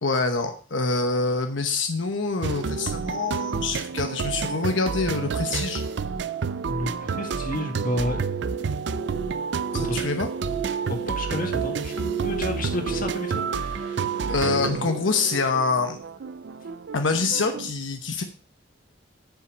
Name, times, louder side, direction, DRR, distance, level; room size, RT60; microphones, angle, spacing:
voice 1, 0.0-5.8 9.7-10.3 14.3-16.0 16.9-18.2, left 4 dB, 90° left, 6 dB, 1.0 m, -25 dB
sound 1, 2.4-17.7, right 5 dB, 65° right, 0.5 m, -30 dB
voice 2, 6.6-8.3 9.8-10.0 10.8-14.3, left 1 dB, 50° left, 4 dB, 2.0 m, -31 dB
sound 2, 8.1-14.7, right 8 dB, ahead, 1.6 m, -34 dB
10.5 x 5.7 x 5.2 m, 0.40 s
head